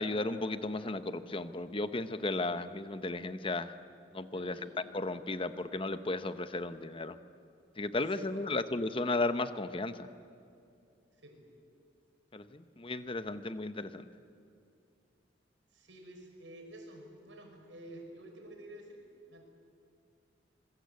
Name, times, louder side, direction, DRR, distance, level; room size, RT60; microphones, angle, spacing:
voice 1, 0.0-3.7 4.1-4.5 4.9-7.2 7.8-10.1 12.3-14.0, left 2 dB, 30° left, 11 dB, 0.9 m, -34 dB
voice 2, 4.3-4.7 8.0-8.6 11.2-11.4 15.7-19.0 19.3-19.4, right 1 dB, 80° right, 2 dB, 5.6 m, -50 dB
25.5 x 21.5 x 8.3 m, 2.5 s
head